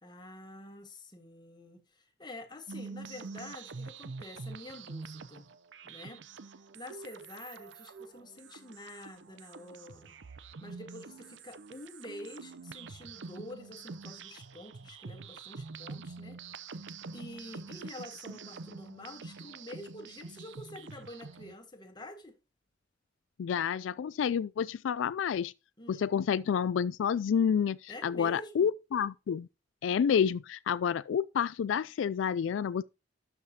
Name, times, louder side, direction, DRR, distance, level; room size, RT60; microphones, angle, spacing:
voice 1, 0.0-5.5 5.8-6.2 6.7-10.1 10.6-16.8 17.1-22.3 25.8-26.1 27.9-28.7, left 1 dB, 25° left, 1.7 m, -47 dB
sound 1, 2.7-21.5, right 4 dB, 70° right, 0.7 m, -46 dB
voice 2, 23.4-25.5 25.9-29.5 29.8-32.8, left 7 dB, 85° left, 0.3 m, -29 dB
12.0 x 5.8 x 2.8 m
head